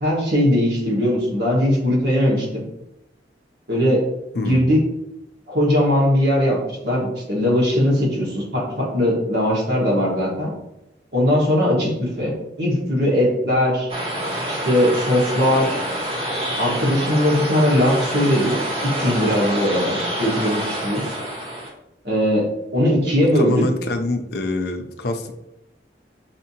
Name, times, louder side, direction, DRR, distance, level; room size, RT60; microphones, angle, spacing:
voice 1, 0.0-2.6 3.7-4.1 4.3-4.8 5.5-10.5 11.1-13.9 14.5-15.8 16.6-18.5 18.8-21.1 22.0-23.6, left 1 dB, 65° right, -4 dB, 1.5 m, -20 dB
voice 2, 4.3-4.7 23.2-25.3, left 2 dB, 60° left, 5 dB, 0.5 m, -25 dB
sound 1, 13.9-21.7, right 1 dB, 30° right, 1.2 m, -27 dB
5.8 x 2.7 x 2.8 m, 0.88 s
head